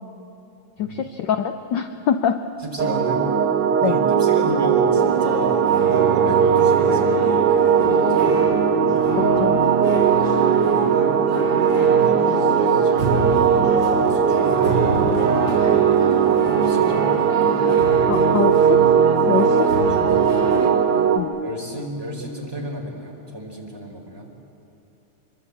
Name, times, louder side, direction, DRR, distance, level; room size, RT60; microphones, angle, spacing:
voice 1, 0.8-2.4 3.8-4.0 9.2-9.6 18.1-18.8 19.3-19.7 21.2-21.3, left 8 dB, 65° left, 8 dB, 1.3 m, -24 dB
voice 2, 2.6-3.3 3.8-5.7 6.1-8.6 10.5-11.2 11.8-15.0 16.6-17.6 19.3-20.5 20.9-21.1 21.4-24.3, right 1 dB, 10° right, 0 dB, 3.9 m, -33 dB
sound 1, 2.8-21.2, right 7 dB, 90° right, 2.2 m, -18 dB
sound 2, 4.7-20.7, right 4 dB, 55° right, 4.2 m, -27 dB
25.5 x 23.5 x 8.4 m, 2.9 s
omnidirectional pair, 2.4 m